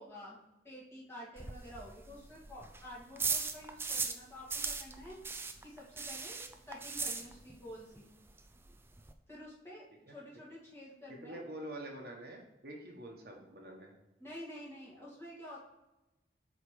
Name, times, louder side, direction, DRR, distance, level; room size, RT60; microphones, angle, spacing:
voice 1, 0.0-5.2 5.6-8.1 9.3-11.5 14.2-15.6, left 1 dB, 15° left, -6 dB, 2.1 m, -50 dB
sound 1, 1.4-4.2 4.5-7.7 8.0-8.1 8.4-8.5 8.7-9.1, right 4 dB, 15° right, 0.4 m, -38 dB
voice 2, 11.2-14.0, right 1 dB, 60° right, 0 dB, 1.3 m, -46 dB
7.8 x 4.8 x 3.2 m, 1.0 s
head